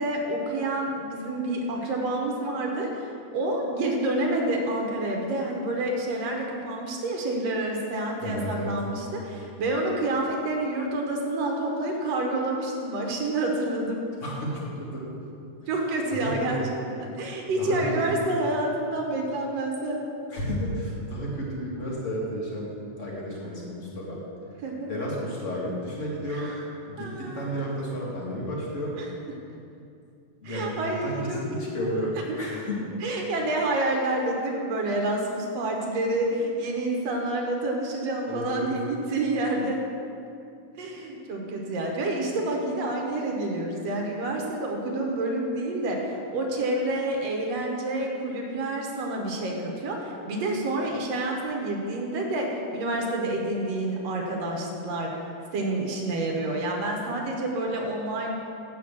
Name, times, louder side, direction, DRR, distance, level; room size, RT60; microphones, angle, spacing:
voice 1, 0.0-14.0 15.7-16.6 17.0-20.0 24.6-24.9 26.3-26.7 27.0-27.5 29.0-29.1 30.4-32.0 32.3-32.4 33.0-39.8 40.8-55.1 55.5-58.3, right 2 dB, 60° right, 0 dB, 2.1 m, -28 dB
voice 2, 8.2-8.7 14.2-15.0 16.1-16.3 16.6-16.7 17.6-17.8 20.3-22.7 23.0-24.2 24.9-26.5 26.8-28.9 30.4-32.9 38.3-38.7, equal, 30° left, -4 dB, 1.8 m, -32 dB
8.4 x 7.1 x 7.3 m, 2.6 s
omnidirectional pair, 3.6 m